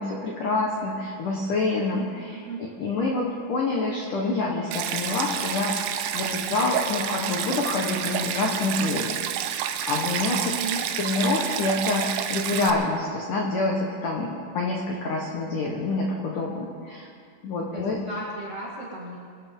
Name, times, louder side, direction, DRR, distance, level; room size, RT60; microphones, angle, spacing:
voice 1, 0.0-9.5 9.9-10.5 11.0-17.1 17.4-18.0, left 3 dB, 80° left, -1 dB, 1.8 m, -27 dB
Stream, 4.7-12.7, right 10 dB, 90° right, 3.5 m, -29 dB
voice 2, 10.5-10.8 17.7-19.2, right 2 dB, 70° right, -4 dB, 1.4 m, -35 dB
24.0 x 13.5 x 3.8 m, 2.2 s
omnidirectional pair, 5.9 m